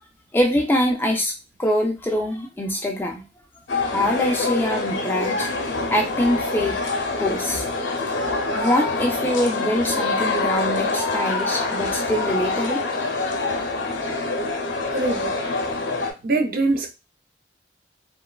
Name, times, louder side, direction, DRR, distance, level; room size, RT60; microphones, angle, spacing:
voice 1, 0.3-1.3 1.6-3.2 3.9-5.5 5.9-6.8 7.1-7.7 8.5-12.8, left 1 dB, 10° left, 0.3 m, -24 dB
sound 1, 3.7-16.1, left 3 dB, 90° left, 0.6 m, -25 dB
voice 2, 14.9-15.4 16.2-16.9, right 2 dB, 50° right, 0.4 m, -23 dB
3.0 x 2.1 x 2.2 m
head